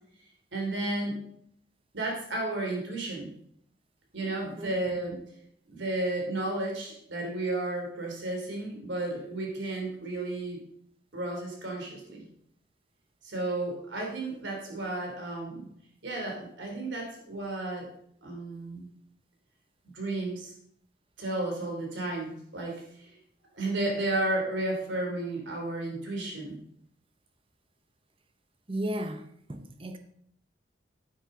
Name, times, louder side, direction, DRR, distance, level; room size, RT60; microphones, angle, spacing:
voice 1, 0.5-1.2 1.9-3.3 4.1-5.2 5.7-10.6 11.1-12.2 13.2-15.7 16.0-17.9 18.2-18.9 19.8-20.5 21.2-23.1 23.5-26.6, right 2 dB, 75° right, 3.2 m, -33 dB
voice 2, 4.4-4.8 28.7-30.0, right 1 dB, 30° right, 0.8 m, -35 dB
9.8 x 9.3 x 3.8 m
head